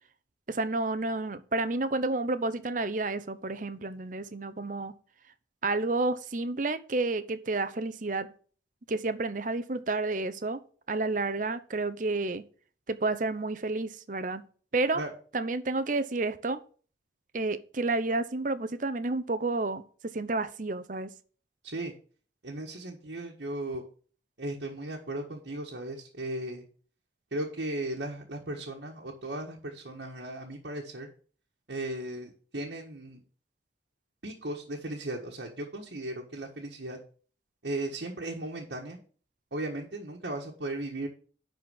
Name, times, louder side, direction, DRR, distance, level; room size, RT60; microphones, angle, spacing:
voice 1, 0.5-4.9 5.6-8.3 8.9-10.6 10.9-12.4 12.9-14.4 14.7-15.0 15.3-16.6 17.3-21.1, right 3 dB, 45° right, 0.8 m, -30 dB
voice 2, 22.4-23.8 24.4-26.6 27.3-31.1 31.7-33.2 34.2-37.0 37.6-39.0 39.5-41.1, right 1 dB, 75° right, 1.5 m, -36 dB
11.0 x 4.4 x 6.3 m
head